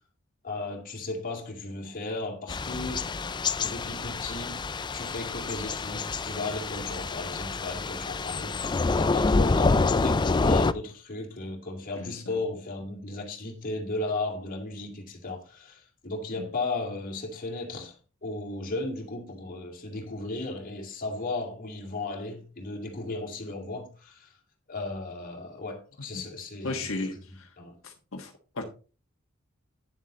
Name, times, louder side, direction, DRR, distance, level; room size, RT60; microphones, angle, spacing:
voice 1, 0.4-3.1 3.6-4.6 4.9-24.4 24.7-27.8, left 2 dB, 45° left, 2.5 m, -35 dB
Thunder / Rain, 2.5-10.7, left 3 dB, 20° left, 0.4 m, -27 dB
voice 2, 26.6-27.5 27.8-28.6, left 3 dB, 80° left, 1.4 m, -35 dB
9.5 x 7.4 x 3.9 m
head